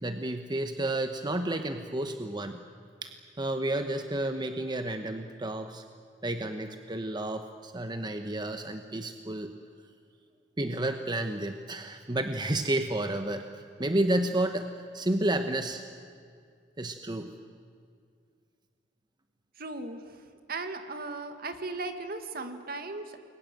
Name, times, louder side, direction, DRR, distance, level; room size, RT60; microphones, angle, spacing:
voice 1, 0.0-2.6 3.0-5.8 6.2-9.5 10.6-15.8 16.8-17.3, right 1 dB, 25° right, 7 dB, 1.0 m, -31 dB
voice 2, 19.6-20.0 20.5-23.3, right 3 dB, 55° right, 7 dB, 2.0 m, -37 dB
29.5 x 22.5 x 7.8 m, 2.2 s
head